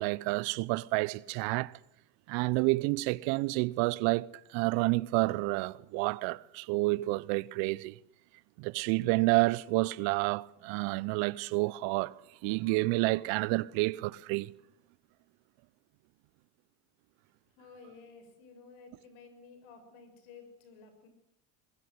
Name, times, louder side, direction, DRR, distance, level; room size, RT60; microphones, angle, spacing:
voice 1, 0.0-1.7 2.3-8.0 8.6-14.5, right 23 dB, 65° right, 0.9 m, -29 dB
voice 2, 17.6-21.1, left 4 dB, 70° left, 7.1 m, -53 dB
22.5 x 21.0 x 8.0 m
supercardioid pair, 95°, 48 cm